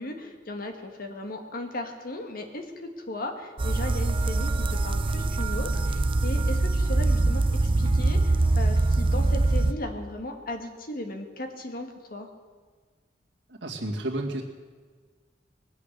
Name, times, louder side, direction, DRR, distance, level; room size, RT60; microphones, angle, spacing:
voice 1, 0.0-12.3, left 1 dB, 55° left, 5 dB, 1.7 m, -36 dB
sound 1, 3.6-9.7, right 2 dB, 30° right, 0.5 m, -23 dB
voice 2, 13.6-14.4, right 1 dB, 80° right, -3 dB, 2.2 m, -31 dB
20.5 x 8.4 x 6.7 m, 1.5 s
head